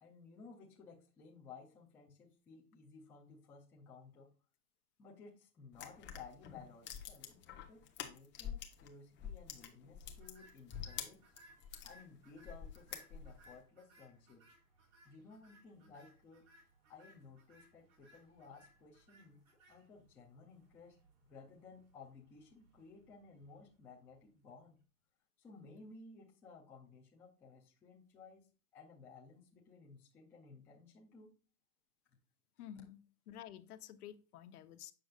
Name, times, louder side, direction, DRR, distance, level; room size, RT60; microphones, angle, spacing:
voice 1, 0.0-4.3 5.0-7.4 7.7-11.2 11.8-14.4 15.0-16.5 16.9-19.4 19.7-21.0 21.3-24.8 25.4-28.5 28.7-31.3, left 4 dB, 5° left, -3 dB, 0.3 m, -57 dB
sound 1, 5.7-8.9 9.2-11.9 12.4-13.5, left 9 dB, 25° left, 1.0 m, -46 dB
sound 2, 10.1-24.5, right 1 dB, 60° right, 3.0 m, -66 dB
voice 2, 32.6-34.9, left 11 dB, 70° left, 12 dB, 0.9 m, -51 dB
7.8 x 6.3 x 2.4 m, 0.36 s
hypercardioid pair, 135°, 47 cm